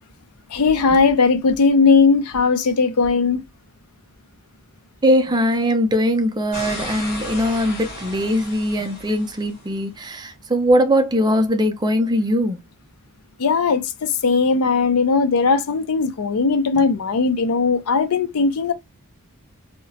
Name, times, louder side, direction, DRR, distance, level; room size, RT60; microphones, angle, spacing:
voice 1, 0.5-3.4 13.4-18.7, left 4 dB, 80° left, 0.5 m, -18 dB
voice 2, 5.0-12.6, equal, 20° right, 0.4 m, -20 dB
sound 1, 6.5-9.7, left 1 dB, 45° left, 1.5 m, -34 dB
2.8 x 2.1 x 2.7 m
head